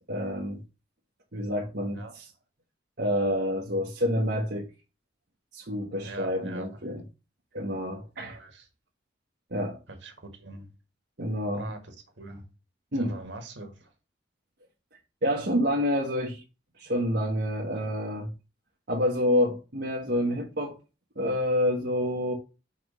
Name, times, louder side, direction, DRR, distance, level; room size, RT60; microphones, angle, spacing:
voice 1, 0.1-0.6 1.3-2.3 3.0-4.7 5.5-7.0 7.5-8.4 9.5-9.8 11.2-11.7 12.9-13.2 15.2-16.4 16.8-18.3 18.9-20.8 21.2-22.3, equal, 60° right, 1.1 m, -28 dB
voice 2, 6.0-6.8 8.2-8.7 9.9-10.7 11.5-12.4 12.9-13.9 17.7-17.8, right 2 dB, 80° right, 1.7 m, -43 dB
5.8 x 3.1 x 5.3 m
head